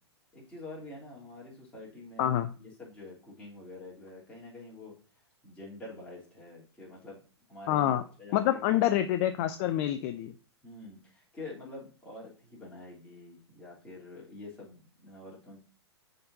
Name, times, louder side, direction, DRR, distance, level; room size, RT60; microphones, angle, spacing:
voice 1, 0.3-4.9 5.4-7.2 7.5-8.8 10.6-15.6, left 2 dB, 10° left, -5 dB, 3.0 m, -47 dB
voice 2, 2.2-2.5 7.7-8.0 8.3-10.3, left 12 dB, 35° left, 10 dB, 0.4 m, -27 dB
10.5 x 4.0 x 2.7 m, 0.39 s
figure-of-eight pair, 105°, 14 cm